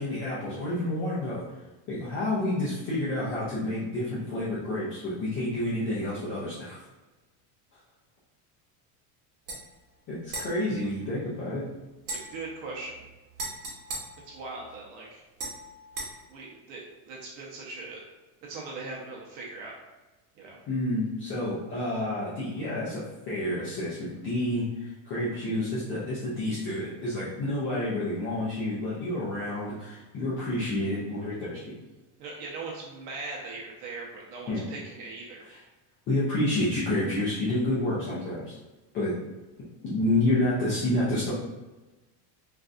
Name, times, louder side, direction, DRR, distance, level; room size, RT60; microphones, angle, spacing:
voice 1, 0.0-1.4 1.9-6.9 10.1-11.6 20.7-31.7 34.5-34.6 35.5-35.6 36.1-38.6 38.9-39.2 39.8-41.3, left 1 dB, 30° left, -8 dB, 0.4 m, -29 dB
sound 1, 9.5-9.6 10.3-11.6 12.0-14.9 15.4-16.1, right 2 dB, 40° right, 1.0 m, -40 dB
voice 2, 12.1-13.1 14.3-15.2 16.3-18.0 18.4-19.7 20.4-20.6 32.2-35.6, right 3 dB, 65° right, -3 dB, 0.8 m, -40 dB
3.3 x 2.5 x 2.4 m, 1.1 s
cardioid pair, 170°, 46 cm